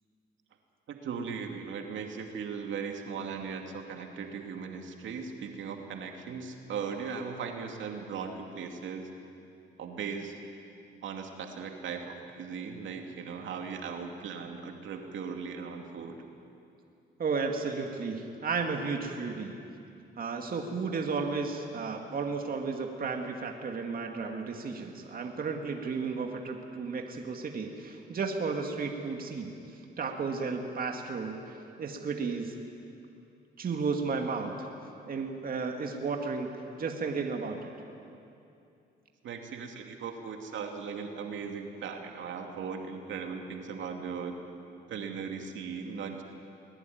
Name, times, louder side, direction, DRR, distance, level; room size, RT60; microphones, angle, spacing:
voice 1, 0.9-9.1 9.8-10.4 11.0-16.2 39.2-44.4 44.9-46.2, right 6 dB, 70° right, 3 dB, 2.5 m, -38 dB
voice 2, 17.2-19.6 20.2-32.5 33.6-34.7 35.1-36.5 36.8-37.7, right 4 dB, 45° right, 3 dB, 2.2 m, -33 dB
22.5 x 20.0 x 9.4 m, 2.7 s
cardioid pair, 90°, 20 cm